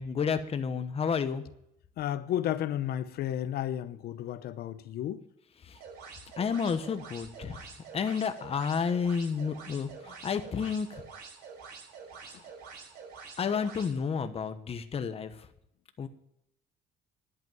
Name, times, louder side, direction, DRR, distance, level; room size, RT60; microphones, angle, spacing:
voice 1, 0.0-1.4 5.6-5.8 6.4-7.6 7.9-11.0 13.4-15.3 16.0-16.1, left 6 dB, 35° left, 1.1 m, -31 dB
voice 2, 2.0-5.2 12.3-12.4, left 11 dB, 70° left, 0.8 m, -32 dB
sound 1, 5.7-13.9, right 5 dB, 70° right, 4.2 m, -47 dB
11.0 x 8.2 x 9.0 m
cardioid pair, 110°, 17 cm